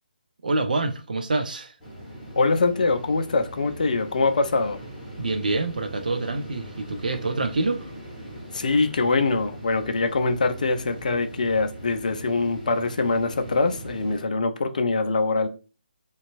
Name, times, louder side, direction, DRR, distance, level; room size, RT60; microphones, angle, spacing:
voice 1, 0.4-1.7 5.2-7.9, right 2 dB, 55° right, 0.4 m, -26 dB
sound 1, 1.8-14.2, right 1 dB, 5° left, 0.9 m, -40 dB
voice 2, 2.4-4.8 8.5-15.5, left 3 dB, 50° left, 0.4 m, -23 dB
2.6 x 2.2 x 2.5 m
figure-of-eight pair, 140°, 5 cm